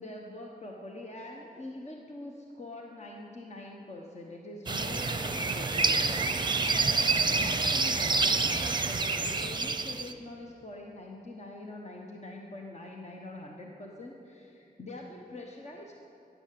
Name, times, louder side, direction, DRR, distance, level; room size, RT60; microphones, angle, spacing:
voice 1, 0.0-6.9 7.3-16.0, left 2 dB, 45° left, 0 dB, 1.3 m, -44 dB
sound 1, 4.7-10.1, right 3 dB, 30° right, 0.7 m, -28 dB
14.5 x 10.5 x 7.7 m, 2.7 s
wide cardioid pair, 115°, 16 cm